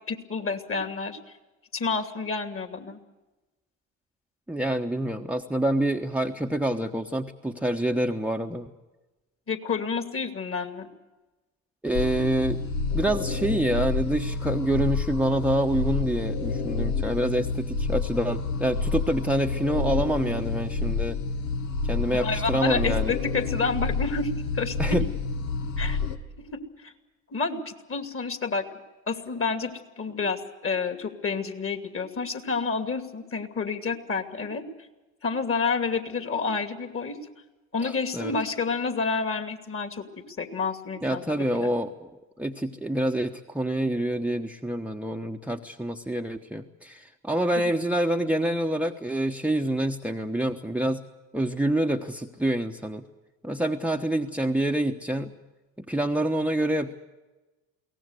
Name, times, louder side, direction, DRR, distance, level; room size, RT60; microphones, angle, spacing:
voice 1, 0.1-1.2 1.7-3.0 9.5-10.9 22.1-25.0 25.8-26.0 26.5-26.9 27.3-28.7 29.1-34.6 35.2-37.2 37.7-40.0 40.4-41.7, left 4 dB, 35° left, 9 dB, 2.7 m, -29 dB
voice 2, 4.5-8.7 11.8-12.6 12.9-21.2 21.8-23.1 24.8-25.1 37.8-38.3 41.0-42.1 42.4-51.0 51.3-53.1 53.4-55.3 55.8-56.9, right 1 dB, 5° right, 6 dB, 1.1 m, -27 dB
sound 1, 11.9-26.2, left 4 dB, 70° left, 1.7 m, -29 dB
23.0 x 18.0 x 8.1 m, 1.1 s
hypercardioid pair, 65°, 40 cm